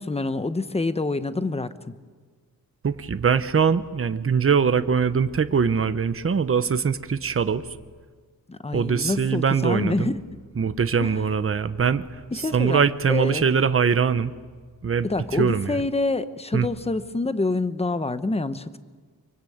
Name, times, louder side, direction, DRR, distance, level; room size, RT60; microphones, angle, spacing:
voice 1, 0.0-1.9 8.5-10.2 11.0-11.1 12.3-12.8 13.1-13.5 15.0-18.8, left 2 dB, 15° left, 12 dB, 1.0 m, -26 dB
voice 2, 2.8-7.6 8.7-10.1 10.6-12.0 12.4-14.3 14.8-15.1 15.3-15.8 16.5-16.7, right 6 dB, 40° right, 12 dB, 0.9 m, -22 dB
25.0 x 24.0 x 8.7 m, 1.5 s
wide cardioid pair, 145°, 35 cm